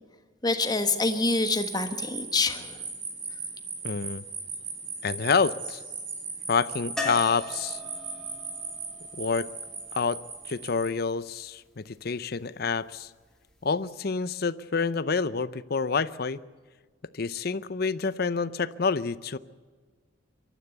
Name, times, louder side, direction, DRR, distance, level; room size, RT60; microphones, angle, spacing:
voice 1, 0.4-2.8, left 3 dB, 20° left, 8 dB, 1.3 m, -26 dB
sound 1, 0.6-10.9, right 4 dB, 70° right, 7.0 m, -38 dB
voice 2, 3.8-4.2 5.0-5.8 6.5-7.8 9.2-9.5 9.9-10.2 10.5-13.1 13.6-16.4 17.1-19.4, left 5 dB, 50° left, 16 dB, 0.6 m, -28 dB
sound 2, 7.0-10.8 13.5-13.6 13.8-13.9, left 2 dB, 5° left, 2.8 m, -39 dB
24.5 x 13.0 x 8.1 m, 1.5 s
head